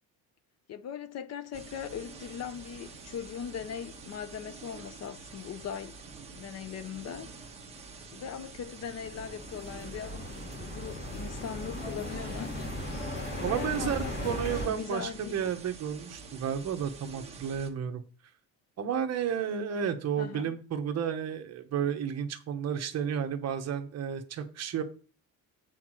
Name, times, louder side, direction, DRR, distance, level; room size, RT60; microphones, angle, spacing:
voice 1, 0.7-6.0 6.3-7.3 8.1-10.2 10.6-12.7 13.5-14.4 14.7-15.4 20.2-20.5, left 8 dB, 50° left, 0.7 m, -40 dB
sound 1, 1.5-17.7, right 4 dB, 20° right, 1.3 m, -48 dB
sound 2, 8.7-14.7, left 1 dB, 30° left, 2.3 m, -37 dB
voice 2, 13.4-18.0 18.8-24.8, right 8 dB, 50° right, 1.1 m, -32 dB
8.4 x 4.1 x 6.2 m
cardioid pair, 160°, 34 cm